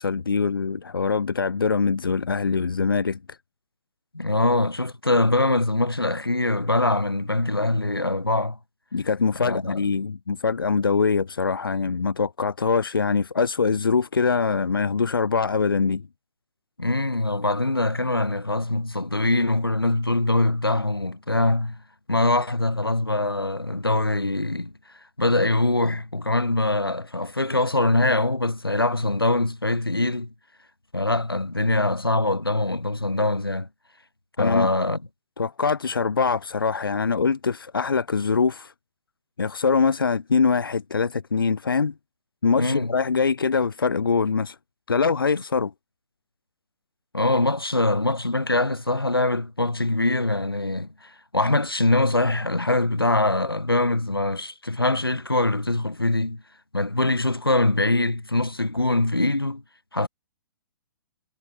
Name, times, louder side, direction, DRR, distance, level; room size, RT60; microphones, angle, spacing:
voice 1, 0.0-3.2 8.9-16.0 34.4-34.7 35.4-38.7 39.4-41.9 42.4-44.6 44.9-45.7, left 5 dB, 70° left, 4.2 m, -23 dB
voice 2, 4.1-8.6 9.4-9.8 16.8-21.8 22.1-24.7 25.2-30.3 30.9-33.7 34.4-35.0 42.6-42.9 47.1-56.4 56.7-59.6 59.9-60.1, left 2 dB, 85° left, 5.9 m, -23 dB
figure-of-eight pair, 120°, 12 cm